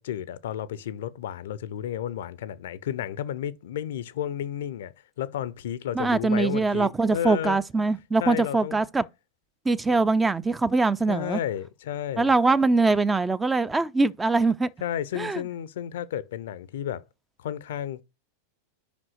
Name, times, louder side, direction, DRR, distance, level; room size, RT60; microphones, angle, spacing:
voice 1, 0.0-7.6 8.2-8.8 9.9-10.0 11.1-12.3 14.8-17.0 17.4-18.0, left 10 dB, 55° left, 0.5 m, -32 dB
voice 2, 6.0-9.1 9.7-11.4 12.2-14.7 15.2-15.4, right 3 dB, 10° right, 0.4 m, -23 dB
5.4 x 5.1 x 6.3 m
figure-of-eight pair, 90°, 0 cm